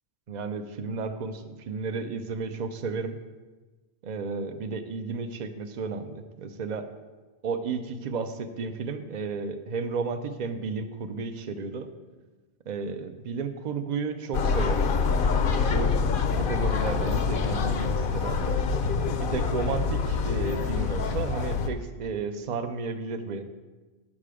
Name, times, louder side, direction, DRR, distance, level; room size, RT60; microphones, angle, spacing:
voice 1, 0.3-3.2 4.0-6.9 7.4-11.9 12.7-14.9 15.6-16.0 16.4-18.6 19.2-23.4, right 4 dB, 50° right, 8 dB, 0.7 m, -33 dB
sound 1, 14.3-21.7, left 5 dB, 55° left, 0.8 m, -26 dB
8.8 x 6.7 x 4.9 m, 1.3 s
omnidirectional pair, 1.1 m